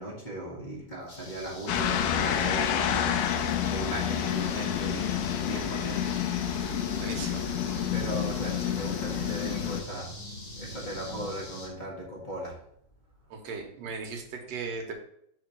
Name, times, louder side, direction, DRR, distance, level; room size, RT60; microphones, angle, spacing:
voice 1, 0.0-6.2 7.9-10.1 10.6-12.5, right 1 dB, 30° left, -4 dB, 0.9 m, -38 dB
sound 1, 1.1-11.7, equal, 70° left, 0.7 m, -44 dB
sound 2, 1.7-9.8, left 9 dB, 90° left, 2.2 m, -29 dB
voice 2, 6.4-7.5 13.3-14.9, right 4 dB, 65° right, 3 dB, 1.9 m, -38 dB
5.0 x 4.8 x 5.8 m, 0.72 s
omnidirectional pair, 3.7 m